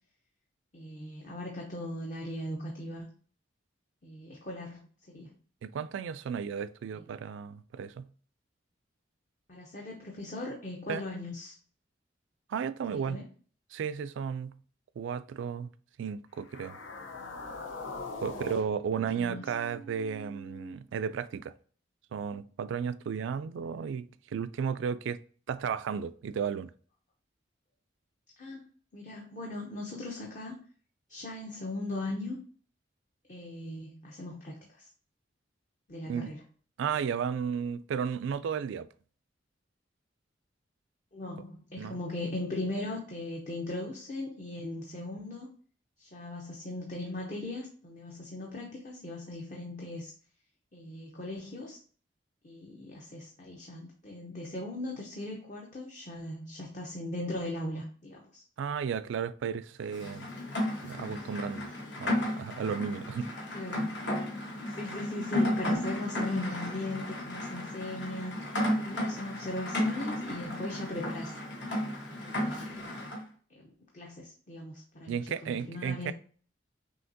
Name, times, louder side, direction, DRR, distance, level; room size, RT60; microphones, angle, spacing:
voice 1, 0.7-3.1 4.0-4.8 5.1-5.3 6.9-7.0 9.5-11.5 12.9-13.2 18.3-18.5 19.0-19.4 28.4-28.6 28.9-30.6 31.1-32.4 33.3-34.9 35.9-36.4 41.1-45.5 46.0-50.1 50.7-51.8 52.4-58.4 63.5-64.0 64.7-68.5 68.8-71.3 72.2-73.0 73.6-76.1, left 2 dB, 40° left, 0.7 m, -39 dB
voice 2, 5.6-8.1 10.9-11.0 12.5-13.2 13.7-14.5 15.0-15.7 16.0-16.8 18.2-21.5 22.1-25.2 25.5-26.7 36.1-36.3 36.8-38.9 41.8-42.0 58.6-60.3 60.8-61.7 62.0-63.3 75.1-76.1, right 7 dB, 75° right, 0.3 m, -34 dB
sound 1, 16.4-20.7, left 2 dB, 85° left, 0.7 m, -43 dB
Rain, 59.9-73.2, left 1 dB, 65° left, 1.1 m, -33 dB
5.7 x 2.8 x 2.7 m
head